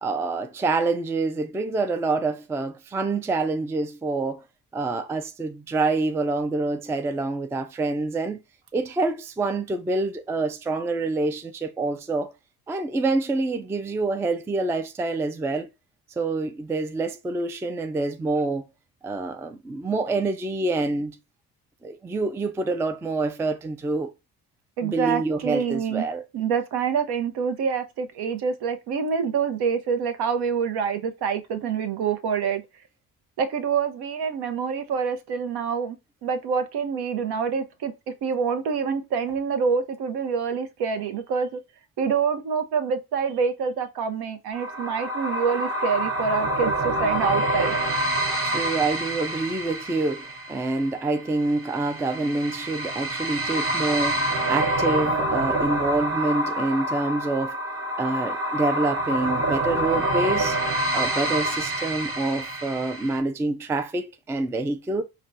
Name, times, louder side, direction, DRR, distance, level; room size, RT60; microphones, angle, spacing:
voice 1, 0.0-4.4 4.7-8.4 8.7-12.3 12.7-15.7 16.2-18.6 19.0-21.2 21.8-24.1 24.8-26.2 48.4-57.6 58.0-60.6 60.9-65.0, right 3 dB, 5° right, 0.3 m, -26 dB
voice 2, 24.8-26.1 26.3-32.6 33.4-36.0 36.2-37.9 38.2-41.6 42.0-47.8, right 6 dB, 60° right, 0.7 m, -26 dB
sound 1, 44.5-63.2, right 1 dB, 30° right, 0.9 m, -27 dB
4.8 x 2.2 x 2.5 m
hypercardioid pair, 50°, 44 cm